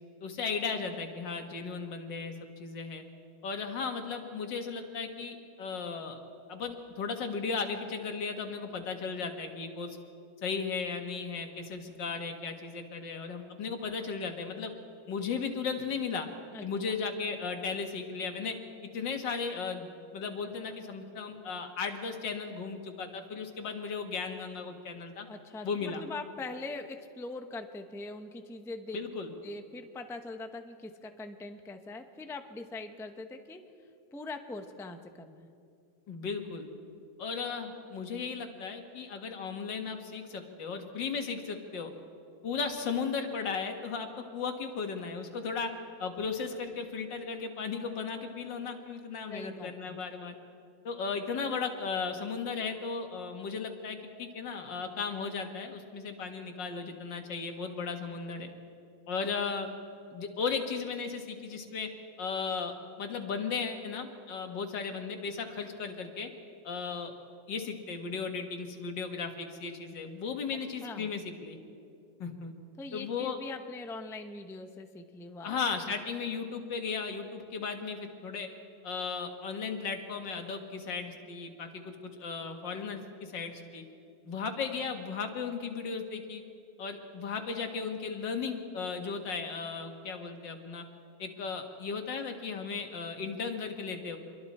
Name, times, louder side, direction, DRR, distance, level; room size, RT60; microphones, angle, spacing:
voice 1, 0.2-3.0 3.4-6.2 6.5-10.0 10.4-14.7 15.1-16.3 16.6-18.6 18.9-25.3 25.6-26.0 28.9-29.3 36.1-36.7 37.2-41.9 42.4-45.7 46.0-50.3 50.8-58.5 59.1-59.7 60.1-61.9 62.2-66.3 66.6-67.1 67.5-71.6 72.2-72.5 72.9-73.4 75.4-78.5 78.8-83.8 84.3-86.4 86.8-90.8 91.2-94.2, left 5 dB, 75° left, 4 dB, 2.3 m, -36 dB
voice 2, 25.3-29.0 29.4-33.6 34.1-35.5 49.3-50.0 70.8-71.1 72.8-75.6, left 3 dB, 5° left, 6 dB, 0.5 m, -42 dB
27.0 x 22.5 x 4.3 m, 2.5 s
omnidirectional pair, 2.0 m